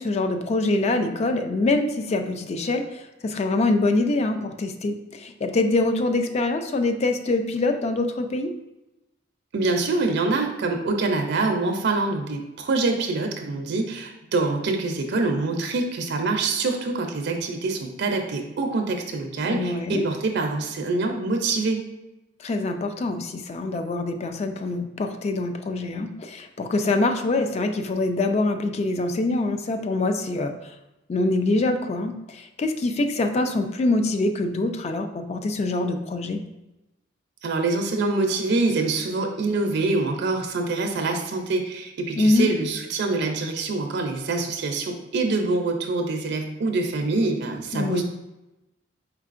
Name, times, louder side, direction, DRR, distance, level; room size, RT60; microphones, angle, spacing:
voice 1, 0.0-8.5 19.4-20.0 22.4-30.5 31.1-36.4 42.2-42.5 47.7-48.0, left 2 dB, 35° left, 6 dB, 0.3 m, -24 dB
voice 2, 9.5-21.8 37.4-48.0, right 3 dB, 60° right, 3 dB, 0.4 m, -25 dB
4.6 x 3.5 x 2.5 m, 0.97 s
head